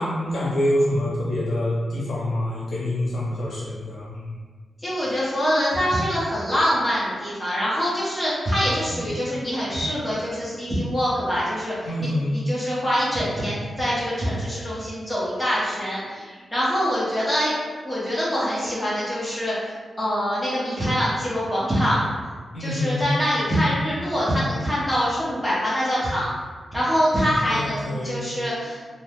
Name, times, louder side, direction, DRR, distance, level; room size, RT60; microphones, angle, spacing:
voice 1, 0.0-4.4 11.8-12.4 22.5-23.1 27.4-28.2, left 1 dB, 60° left, -6 dB, 0.7 m, -26 dB
voice 2, 4.8-17.5 17.8-22.0 22.6-26.3 26.7-28.8, equal, ahead, -9 dB, 0.8 m, -24 dB
2.7 x 2.1 x 3.4 m, 1.5 s
wide cardioid pair, 170°, 0 cm